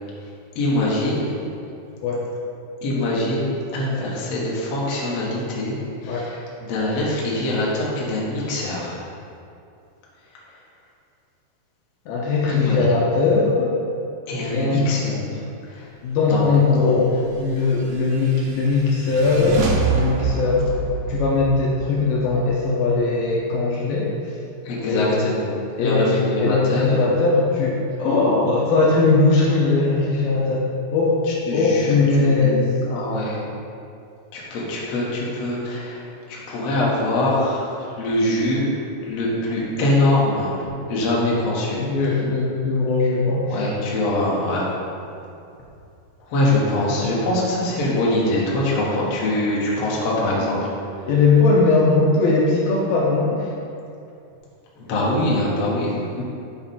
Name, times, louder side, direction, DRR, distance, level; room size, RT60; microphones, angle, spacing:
voice 1, 0.6-1.3 2.8-9.0 10.5-10.6 12.5-13.0 14.3-15.9 16.3-16.4 16.7-16.9 24.6-25.5 25.8-27.2 31.3-32.5 32.9-33.4 34.3-38.7 39.0-42.2 43.5-44.7 46.2-50.6 51.0-51.1 54.7-56.2, left 1 dB, 60° left, -5 dB, 1.8 m, -24 dB
voice 2, 12.1-13.8 14.5-14.9 16.0-17.1 17.4-19.6 19.9-20.7 21.1-24.4 24.9-25.2 25.8-31.2 31.5-32.7 41.8-43.7 50.4-50.5 51.1-53.5, left 3 dB, 75° left, -3 dB, 2.4 m, -19 dB
sound 1, 17.5-23.1, right 5 dB, 85° right, 3.1 m, -27 dB
7.6 x 4.9 x 5.4 m, 2.6 s
omnidirectional pair, 4.8 m